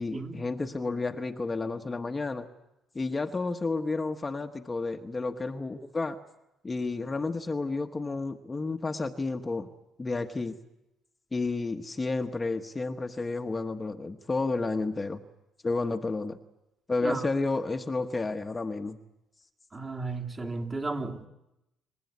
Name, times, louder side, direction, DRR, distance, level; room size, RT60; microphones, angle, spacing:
voice 1, 0.0-2.5 2.9-6.2 6.6-9.7 10.0-10.6 11.3-15.2 15.6-16.4 16.9-19.0, left 3 dB, 20° left, 5 dB, 1.2 m, -31 dB
voice 2, 19.7-21.3, right 3 dB, 25° right, 2 dB, 3.3 m, -34 dB
28.0 x 15.5 x 9.6 m, 0.91 s
cardioid pair, 95°, 0 cm